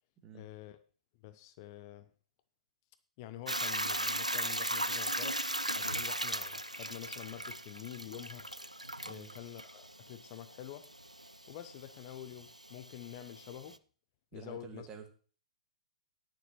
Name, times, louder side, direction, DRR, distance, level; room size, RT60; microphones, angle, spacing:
voice 1, 0.3-0.8 1.2-2.1 3.2-8.5 9.0-10.9 11.5-13.8 14.3-14.9, left 12 dB, 35° left, 0.6 m, -47 dB
Hiss / Toilet flush / Trickle dribble, 3.5-13.8, right 1 dB, 90° right, 0.5 m, -38 dB
voice 2, 14.3-15.1, right 6 dB, 20° right, 1.8 m, -49 dB
19.5 x 6.8 x 3.1 m
figure-of-eight pair, 110°, 4 cm